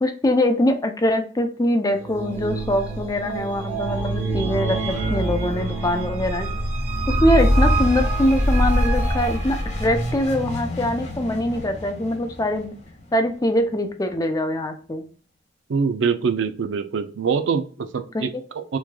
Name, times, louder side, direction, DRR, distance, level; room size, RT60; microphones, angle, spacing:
voice 1, 0.0-6.5 7.1-12.7 13.1-15.0 18.1-18.3, left 1 dB, 20° left, 0.5 m, -23 dB
sound 1, 2.0-10.3, right 1 dB, 40° right, 1.4 m, -24 dB
sound 2, 7.4-14.0, equal, 40° left, 0.8 m, -33 dB
voice 2, 15.7-18.8, right 5 dB, 85° right, 0.4 m, -24 dB
3.4 x 3.2 x 2.2 m
head